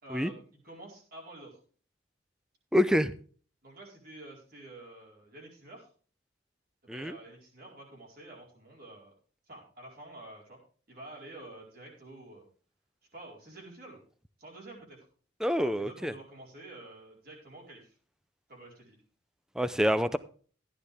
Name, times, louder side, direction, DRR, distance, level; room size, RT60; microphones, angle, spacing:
voice 1, 0.0-1.6 3.6-5.9 6.8-9.1 9.5-10.6 10.9-12.4 13.1-14.0 14.4-15.0 15.6-17.9 18.5-19.0, right 2 dB, 50° right, -1 dB, 4.4 m, -49 dB
voice 2, 2.7-3.1 6.9-7.2 15.4-16.1 19.6-20.2, equal, 5° right, 14 dB, 0.5 m, -26 dB
13.5 x 10.0 x 3.5 m, 0.41 s
head